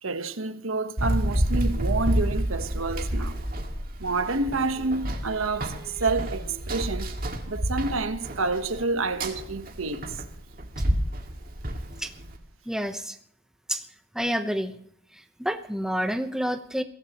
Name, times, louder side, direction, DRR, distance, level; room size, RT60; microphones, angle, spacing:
voice 1, 0.0-3.4 4.0-7.1 7.5-10.2, right 3 dB, 90° right, 1.3 m, -28 dB
Run, 1.0-12.4, right 1 dB, 45° right, 2.1 m, -29 dB
voice 2, 12.7-13.2 13.7-13.8 14.1-14.7 15.1-16.8, equal, 5° right, 1.0 m, -29 dB
22.5 x 16.5 x 3.1 m
head